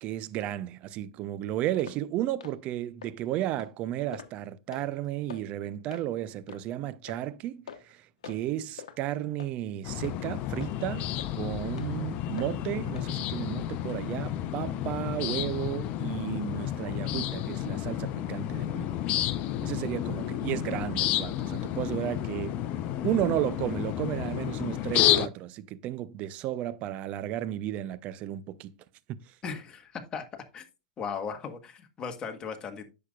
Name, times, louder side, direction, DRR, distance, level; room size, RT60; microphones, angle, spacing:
voice 1, 0.0-18.9 19.6-22.6 23.0-28.7, right 13 dB, 45° right, 0.6 m, -33 dB
sound 1, 1.8-2.0 2.4-2.6 3.0-3.1 3.6-3.7 4.1-4.4 4.7-4.9 5.3-5.4 5.9-6.1 6.5-6.6 7.1-7.2 7.7-7.9 8.2-8.5 8.8-9.0 9.4-9.5 10.0-10.2 10.6-10.8 11.2-11.3 11.8-11.9 12.4-12.5 13.0-13.1 13.5-13.6, left 8 dB, 80° left, 1.0 m, -44 dB
sound 2, 9.8-25.3, left 12 dB, 45° left, 0.7 m, -31 dB
voice 2, 29.4-30.2 30.5-30.6 31.0-32.9, left 6 dB, 25° left, 1.6 m, -37 dB
9.9 x 6.6 x 2.4 m
hypercardioid pair, 110°, 3 cm